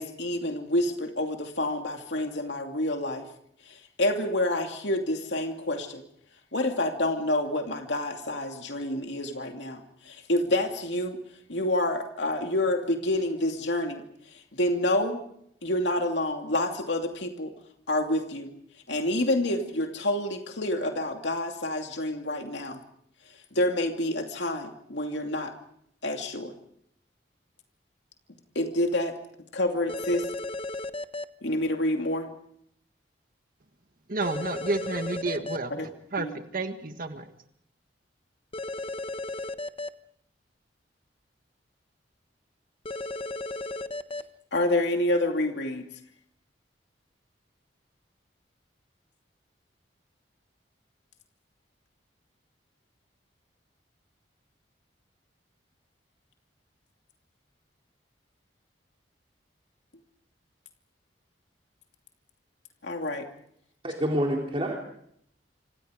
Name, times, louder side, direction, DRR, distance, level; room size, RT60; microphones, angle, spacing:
voice 1, 0.0-3.3 3.7-6.0 6.5-11.2 11.5-14.0 14.5-15.2 15.6-17.5 17.9-18.5 18.9-22.8 23.5-25.5 26.0-26.5 28.5-29.2 29.5-30.3 31.4-32.3 35.7-35.9 36.2-36.4 44.5-45.8 62.8-63.3, left 1 dB, 75° left, 3 dB, 2.7 m, -28 dB
Doctor's Office Phone, 29.9-31.2 34.2-35.6 38.5-39.9 42.8-44.2, left 2 dB, 30° left, 1.1 m, -34 dB
voice 2, 34.1-35.8 36.1-36.3 36.5-37.3, right 3 dB, 50° right, 7 dB, 1.7 m, -30 dB
voice 3, 63.8-64.9, equal, 30° right, -1 dB, 3.4 m, -28 dB
27.5 x 26.5 x 5.1 m, 0.70 s
head